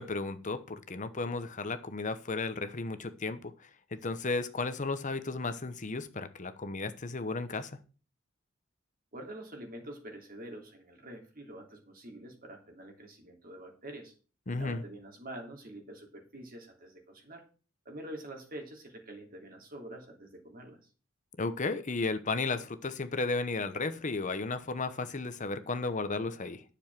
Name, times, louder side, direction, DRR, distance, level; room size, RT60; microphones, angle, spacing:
voice 1, 0.0-7.8 14.5-14.8 21.4-26.6, left 3 dB, 40° left, 0.9 m, -34 dB
voice 2, 9.1-14.1 14.6-17.5 17.8-20.8, right 1 dB, 45° right, 3.0 m, -46 dB
10.5 x 7.0 x 6.0 m
head